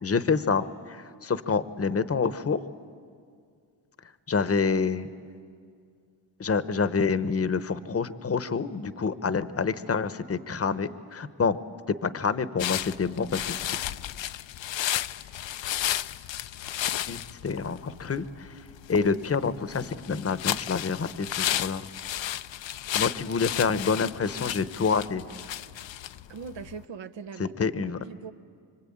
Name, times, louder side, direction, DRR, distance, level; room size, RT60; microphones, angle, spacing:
voice 1, 0.0-2.6 4.3-5.1 6.4-11.6 12.0-13.6 17.1-18.5 18.9-21.9 22.9-25.2 27.4-28.0, left 5 dB, 30° left, 13 dB, 0.9 m, -27 dB
sound 1, 12.6-26.8, left 12 dB, 70° left, 0.6 m, -33 dB
voice 2, 26.3-28.3, right 5 dB, 70° right, 9 dB, 0.9 m, -41 dB
25.5 x 25.0 x 8.7 m, 2.2 s
cardioid pair, 85°, 46 cm